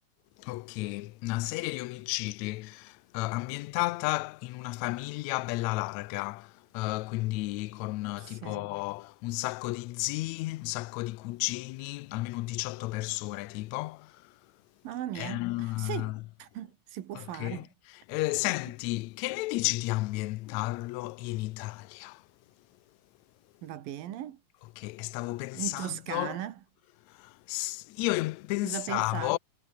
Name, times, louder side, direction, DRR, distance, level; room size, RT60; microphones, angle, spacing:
voice 1, 0.4-14.3 15.1-16.2 17.1-17.7 18.1-22.2 24.8-26.4 27.1-29.4, left 21 dB, 90° left, 1.6 m, -33 dB
voice 2, 8.2-8.7 14.8-16.1 16.4-17.7 18.4-18.5 23.6-24.4 25.5-26.6 28.6-29.4, right 12 dB, 90° right, 3.3 m, -38 dB
omnidirectional pair, 3.9 m